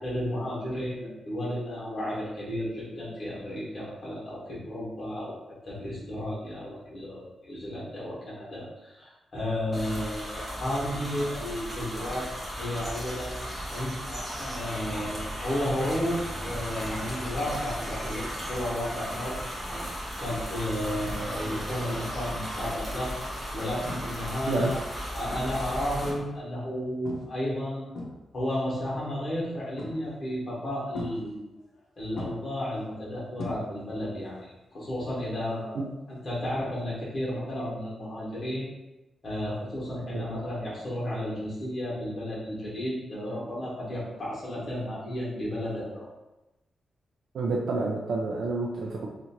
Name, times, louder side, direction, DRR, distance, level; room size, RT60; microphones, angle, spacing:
voice 1, 0.0-5.3 5.7-12.3 12.6-19.4 20.2-23.1 23.5-24.8 25.1-27.9 28.3-31.4 32.0-35.8 36.1-38.7 39.2-46.1, left 1 dB, 35° left, -7 dB, 1.4 m, -33 dB
sound 1, 9.7-26.1, equal, 5° right, 0.9 m, -36 dB
sound 2, 23.9-24.3 24.6-25.0 25.3-26.4 27.1-27.4 27.7-28.6 29.8-30.3 30.9-31.8 32.2-34.1 34.3-34.7 36.8-36.9, left 2 dB, 85° left, 0.7 m, -40 dB
voice 2, 47.3-49.1, right 3 dB, 65° right, -2 dB, 0.4 m, -28 dB
2.9 x 2.5 x 4.3 m, 1.0 s
wide cardioid pair, 160°, 0 cm